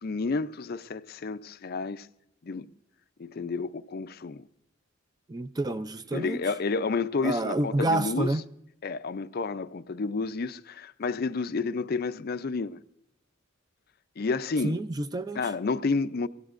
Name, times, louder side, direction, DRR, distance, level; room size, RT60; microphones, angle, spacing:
voice 1, 0.0-2.1 2.4-2.7 3.2-4.5 5.7-5.8 6.1-8.3 8.8-12.8 14.2-14.8 15.4-16.3, left 4 dB, 50° left, 0.5 m, -30 dB
voice 2, 5.3-6.4 7.2-8.4 14.6-15.5, right 2 dB, 20° right, 0.4 m, -28 dB
24.0 x 16.5 x 2.5 m
head